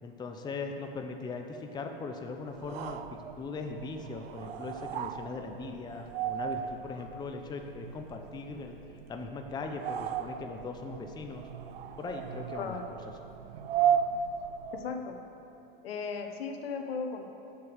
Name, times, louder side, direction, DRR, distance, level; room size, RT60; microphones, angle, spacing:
voice 1, 0.0-8.8 9.1-11.4 12.0-13.0, left 4 dB, 15° left, 4 dB, 0.6 m, -39 dB
sound 1, 2.5-15.1, right 8 dB, 85° right, 0.6 m, -36 dB
voice 2, 14.7-15.2 15.8-17.3, left 5 dB, 80° left, 5 dB, 1.1 m, -36 dB
6.9 x 6.6 x 7.9 m, 2.8 s
hypercardioid pair, 120°, 29 cm